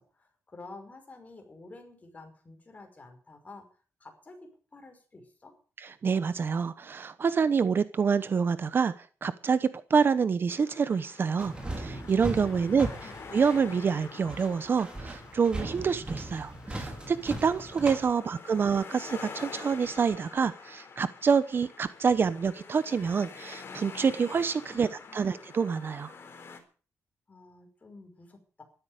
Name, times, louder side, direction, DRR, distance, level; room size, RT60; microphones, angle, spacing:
voice 1, 0.0-5.6 12.6-13.1 18.2-18.3 18.5-18.6 24.7-25.2 27.3-28.6, left 3 dB, 30° left, 5 dB, 5.4 m, -50 dB
voice 2, 6.0-12.9 13.3-26.1, right 6 dB, 40° right, 14 dB, 0.9 m, -27 dB
sound 1, 10.5-26.6, left 5 dB, 50° left, 3.9 m, -47 dB
sound 2, 11.4-18.1, right 1 dB, 15° right, 4.9 m, -38 dB
14.0 x 13.0 x 6.6 m, 0.39 s
cardioid pair, 115°, 5 cm